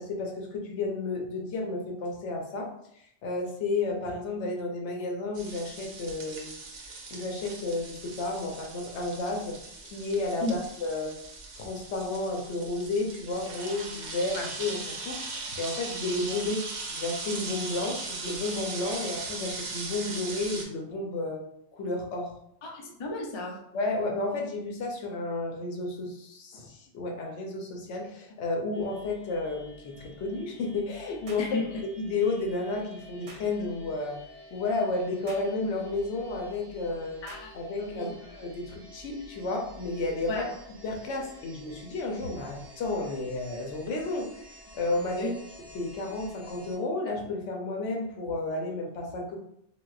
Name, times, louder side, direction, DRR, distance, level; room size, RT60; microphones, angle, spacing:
voice 1, 0.0-2.7 3.2-6.5 6.8-9.6 9.8-11.2 11.6-21.4 21.7-22.3 23.7-31.6 31.9-34.2 34.5-37.2 37.5-40.5 40.8-45.3 45.7-49.4, left 2 dB, 85° left, 1 dB, 1.0 m, -32 dB
sound 1, 5.3-20.6, right 3 dB, 55° right, 0.6 m, -39 dB
voice 2, 22.6-23.6 31.4-31.8 37.2-38.1 40.3-40.5 45.1-45.3, left 2 dB, 45° left, 0 dB, 0.4 m, -34 dB
sound 2, 28.7-46.8, equal, 5° left, 0.9 m, -51 dB
sound 3, 31.3-31.5 33.3-33.5 35.3-35.5 37.3-37.5, right 2 dB, 70° right, 1.0 m, -47 dB
3.9 x 2.1 x 2.4 m, 0.73 s
omnidirectional pair, 1.2 m